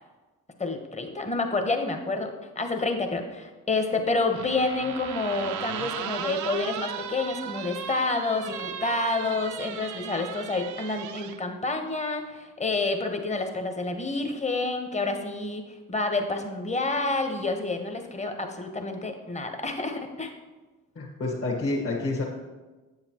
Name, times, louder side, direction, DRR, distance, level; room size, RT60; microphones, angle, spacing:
voice 1, 0.6-15.6 15.9-20.3, left 3 dB, 20° left, 5 dB, 1.1 m, -29 dB
sound 1, 4.3-11.4, right 9 dB, 50° right, 0.5 m, -36 dB
voice 2, 20.9-22.2, left 2 dB, 40° left, -5 dB, 1.6 m, -28 dB
7.7 x 6.8 x 3.0 m, 1.2 s
supercardioid pair, 50°, 38 cm